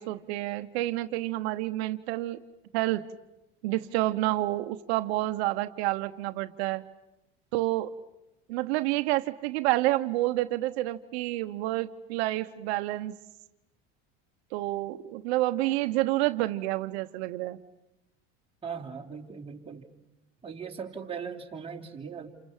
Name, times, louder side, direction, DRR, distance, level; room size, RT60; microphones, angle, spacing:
voice 1, 0.0-2.4 2.7-3.1 3.6-6.8 7.5-7.9 8.5-13.1 14.5-17.6, right 17 dB, 85° right, 8 dB, 1.0 m, -29 dB
voice 2, 18.6-19.9 20.4-22.3, right 6 dB, 20° right, 0 dB, 3.5 m, -39 dB
29.0 x 27.0 x 7.4 m, 0.92 s
supercardioid pair, 115°, 31 cm